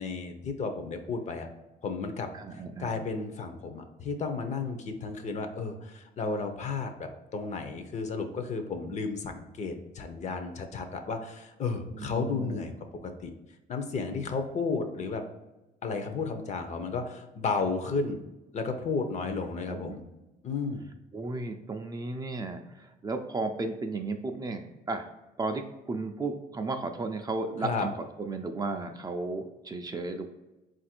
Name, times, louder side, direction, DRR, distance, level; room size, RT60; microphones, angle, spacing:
voice 1, 0.0-1.5 1.8-2.3 2.8-12.7 13.0-13.3 13.7-15.2 15.8-18.2 18.5-20.0 20.4-20.8 27.6-27.9, left 4 dB, 45° left, 7 dB, 0.6 m, -33 dB
voice 2, 2.3-2.9 11.9-12.6 19.7-20.0 21.1-25.1 25.4-27.9 28.2-30.3, right 3 dB, 20° right, 5 dB, 0.4 m, -34 dB
4.0 x 2.5 x 4.2 m, 1.0 s
cardioid pair, 110°, 17 cm